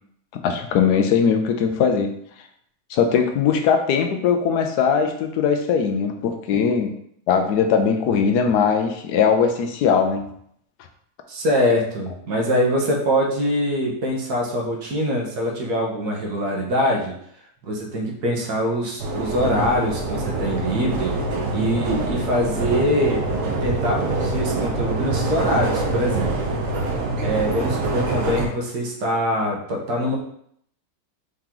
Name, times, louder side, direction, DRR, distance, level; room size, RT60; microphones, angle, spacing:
voice 1, 0.3-2.1 2.9-6.9 7.3-10.3, left 6 dB, 85° left, 5 dB, 1.2 m, -20 dB
voice 2, 11.3-17.1 17.6-21.1 21.5-23.2 23.6-26.5 27.2-30.2, equal, 85° right, -1 dB, 1.6 m, -23 dB
sound 1, 19.0-28.5, right 3 dB, 60° right, 1.1 m, -25 dB
4.8 x 2.9 x 3.7 m, 0.68 s
omnidirectional pair, 1.7 m